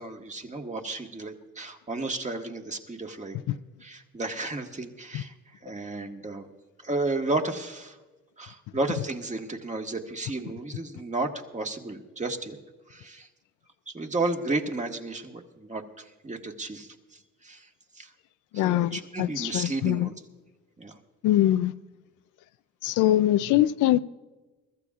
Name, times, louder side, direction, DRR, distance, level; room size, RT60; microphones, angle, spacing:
voice 1, 0.0-3.4 3.8-6.5 6.8-8.0 8.4-12.6 12.9-13.3 13.9-17.7 17.9-18.1 18.6-20.1 20.8-21.0, right 2 dB, 25° right, 1.6 m, -33 dB
voice 2, 18.5-20.1 21.2-21.7 22.8-24.0, left 13 dB, 85° left, 0.5 m, -23 dB
23.0 x 14.0 x 2.4 m
cardioid pair, 90°, 30 cm